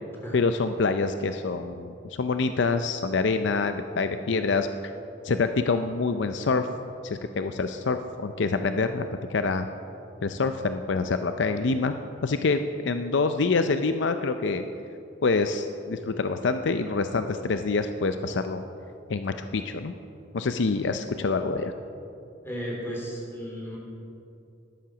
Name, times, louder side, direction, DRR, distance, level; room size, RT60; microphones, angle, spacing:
voice 1, 0.3-4.7 5.2-6.7 7.0-9.7 10.2-12.0 12.2-14.6 15.2-18.6 19.1-19.9 20.3-21.7, left 4 dB, 70° left, 8 dB, 0.5 m, -26 dB
voice 2, 22.4-23.8, equal, 15° left, -3 dB, 3.2 m, -34 dB
13.0 x 10.5 x 6.1 m, 2.7 s
head